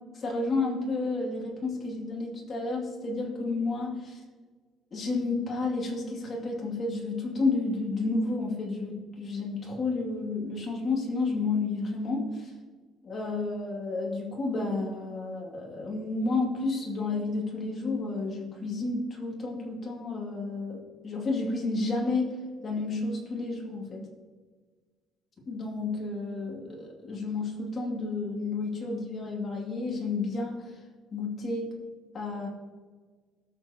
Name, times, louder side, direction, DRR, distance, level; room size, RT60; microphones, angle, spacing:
voice 1, 0.1-4.2 4.9-12.5 13.0-22.3 22.6-24.0 25.5-30.6 31.1-31.7 32.1-32.5, left 3 dB, 30° left, -2 dB, 2.6 m, -31 dB
18.5 x 6.8 x 3.0 m, 1.5 s
cardioid pair, 165°, 0 cm